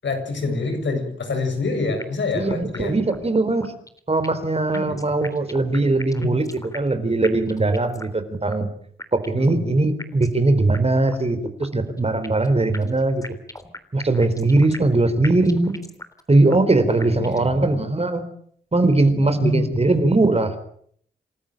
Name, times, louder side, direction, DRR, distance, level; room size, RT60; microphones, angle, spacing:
voice 1, 0.0-3.0 4.7-5.1 6.2-6.3 9.3-9.7 16.9-17.8 19.2-19.8, left 3 dB, 65° left, 6 dB, 7.5 m, -27 dB
sound 1, 2.0-2.4 2.7-2.8 3.1-3.2 3.6-4.5 4.7-7.0 7.2-8.2 8.5-8.6 9.0-9.5 10.0-10.4 10.7-10.8 11.1-11.2 11.6-12.5 12.7-15.0 15.2-16.2 16.5-16.6 17.0-17.5, left 1 dB, 15° left, 3.5 m, -38 dB
voice 2, 2.3-3.7 4.1-8.7 9.1-13.2 13.9-15.7 16.3-18.2 18.7-20.5, right 2 dB, 30° right, 10 dB, 4.3 m, -20 dB
28.5 x 13.5 x 9.2 m, 0.64 s
cardioid pair, 55°, 20 cm